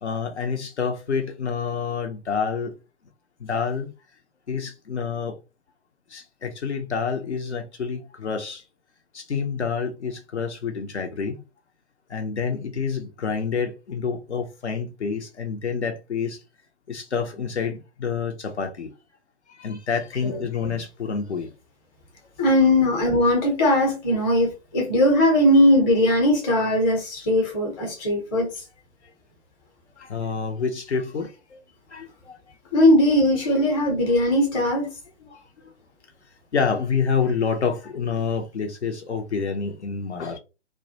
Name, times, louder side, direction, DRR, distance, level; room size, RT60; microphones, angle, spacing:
voice 1, 0.0-2.8 3.4-3.9 4.5-5.4 6.1-8.6 9.1-11.4 12.1-16.4 16.9-18.9 19.5-21.5 30.0-31.6 31.9-32.4 35.2-35.7 36.5-40.4, left 5 dB, 70° left, 0.7 m, -28 dB
voice 2, 20.2-20.8 22.4-28.5 32.7-34.9, left 1 dB, 20° left, 0.8 m, -19 dB
2.3 x 2.1 x 2.7 m
figure-of-eight pair, 130°, 35 cm